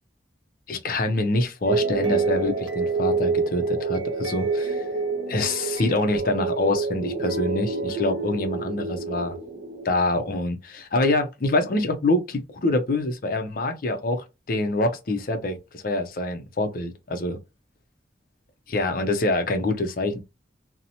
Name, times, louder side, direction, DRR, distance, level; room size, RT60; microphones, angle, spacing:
voice 1, 0.7-4.8 5.3-9.4 9.8-17.4 18.7-20.2, left 2 dB, 50° left, 0.5 m, -25 dB
sound 1, 1.7-10.0, right 4 dB, 80° right, 0.8 m, -27 dB
2.7 x 2.0 x 2.7 m
head